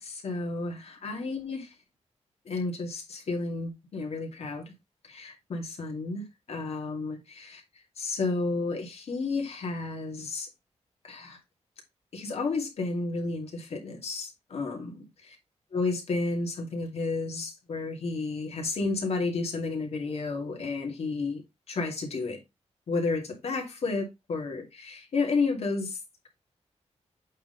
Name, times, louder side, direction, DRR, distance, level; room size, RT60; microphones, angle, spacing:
voice 1, 0.0-1.7 2.5-4.7 5.1-7.6 8.0-10.5 11.0-11.4 12.1-15.4 15.7-21.4 21.7-22.4 22.9-26.0, left 3 dB, 60° left, 2.4 m, -32 dB
8.3 x 3.7 x 3.9 m
wide cardioid pair, 175°, 12 cm